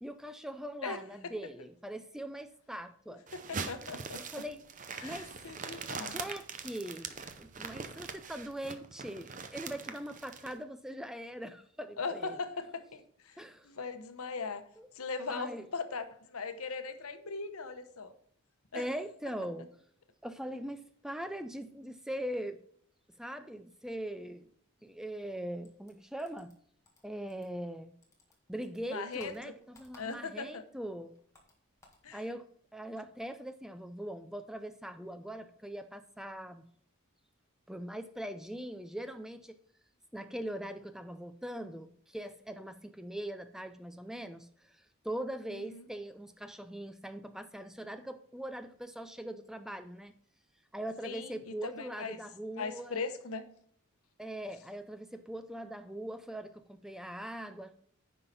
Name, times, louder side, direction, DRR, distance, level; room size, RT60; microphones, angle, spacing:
voice 1, 0.0-3.2 4.3-4.6 5.0-5.3 5.9-12.4 13.4-13.7 14.8-14.9 15.3-15.7 18.7-19.7 20.2-22.6 23.2-24.5 24.8-26.5 27.0-27.9 28.5-31.1 32.1-32.5 32.7-36.7 37.7-39.6 40.1-50.1 50.7-53.0 54.2-57.8, right 1 dB, ahead, 10 dB, 0.3 m, -41 dB
voice 2, 0.8-1.3 3.3-4.2 5.0-6.2 12.0-14.6 14.9-18.1 18.7-18.8 28.9-29.3 30.0-30.6 32.0-32.2 45.7-45.8 51.0-52.2 52.6-53.4, left 4 dB, 80° left, 10 dB, 0.9 m, -39 dB
sound 1, 3.3-10.5, right 5 dB, 35° right, 0.7 m, -42 dB
sound 2, 25.6-27.8 28.0-30.5 30.8-32.1, left 2 dB, 15° left, 1.6 m, -61 dB
9.6 x 5.6 x 4.1 m, 0.63 s
head